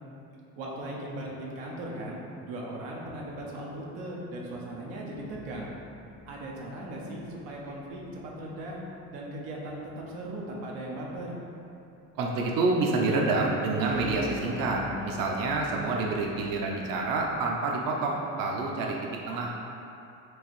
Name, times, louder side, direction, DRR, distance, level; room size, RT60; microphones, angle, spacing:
voice 1, 0.6-5.7 6.3-8.8 9.1-11.4, right 1 dB, 85° right, -3 dB, 0.8 m, -38 dB
sound 1, 5.1-8.1 13.8-17.4, left 4 dB, 20° left, 0.5 m, -44 dB
voice 2, 12.2-19.0 19.3-19.5, right 3 dB, 55° right, -1 dB, 0.6 m, -28 dB
4.6 x 2.6 x 3.0 m, 2.7 s
supercardioid pair, 70°, 42 cm